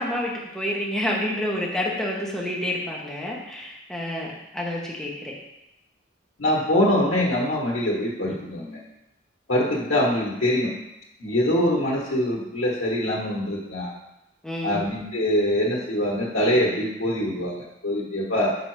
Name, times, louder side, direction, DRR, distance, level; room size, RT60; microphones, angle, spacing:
voice 1, 0.0-5.3 8.2-8.4 14.4-14.8, left 1 dB, 5° left, -4 dB, 1.0 m, -29 dB
voice 2, 6.4-8.8 9.5-10.7 11.2-13.9 14.6-18.5, left 1 dB, 80° left, -4 dB, 1.3 m, -24 dB
5.8 x 3.9 x 4.6 m, 0.86 s
head